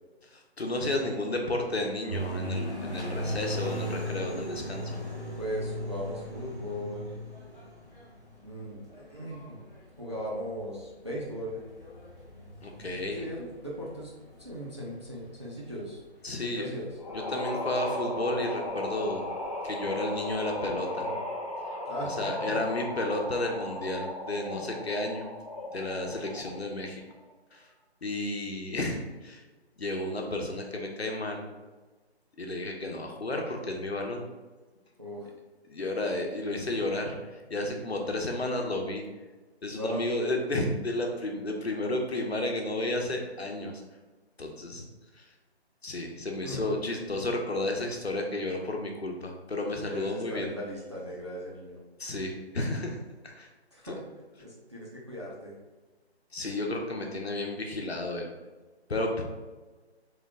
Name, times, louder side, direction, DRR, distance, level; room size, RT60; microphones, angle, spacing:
voice 1, 0.3-5.0 12.6-13.3 16.2-16.7 17.1-19.3 19.6-21.1 22.0-25.3 25.7-27.0 27.5-27.6 28.0-29.4 29.8-31.5 32.4-34.3 35.7-39.0 39.6-43.7 44.4-44.8 45.2-45.3 45.8-50.5 52.0-53.0 53.2-53.5 53.8-53.9 56.3-58.3 58.9-59.2, left 1 dB, 70° left, 2 dB, 1.0 m, -32 dB
sound 1, 2.1-16.1 16.7-16.8 17.1-19.7 20.1-20.8, equal, 15° left, 0.9 m, -38 dB
voice 2, 5.4-7.1 8.4-8.8 9.1-9.6 10.0-11.6 13.1-14.1 14.4-16.0 16.5-16.9 21.9-22.5 35.0-35.3 39.8-40.0 46.4-46.7 49.9-51.8 53.7-54.0 54.4-55.5, equal, 25° right, -5 dB, 0.5 m, -37 dB
sound 2, 17.0-26.7, left 1 dB, 35° left, 0.5 m, -36 dB
3.7 x 3.6 x 3.5 m, 1.3 s
figure-of-eight pair, 150°, 33 cm